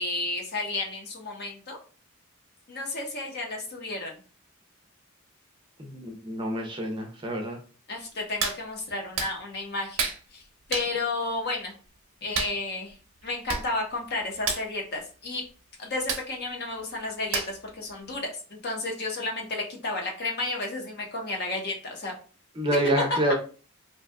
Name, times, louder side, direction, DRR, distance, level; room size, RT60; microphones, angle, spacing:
voice 1, 0.0-1.8 2.7-4.2 7.9-10.0 10.3-11.7 12.2-13.0 13.2-15.4 15.8-22.1 23.1-23.2, left 2 dB, 50° left, 1 dB, 0.8 m, -32 dB
voice 2, 5.8-7.6 22.6-23.3, right 1 dB, 25° right, 3 dB, 0.5 m, -27 dB
Hands, 8.4-8.6 9.2-9.3 10.0-10.2 10.7-10.9 12.3-12.6 13.2-13.3 13.5-13.7 13.9-14.1 14.4-14.6 16.1-16.3 17.3-17.7 18.1-18.2, right 5 dB, 80° right, 0.7 m, -29 dB
2.7 x 2.3 x 3.3 m, 0.38 s
head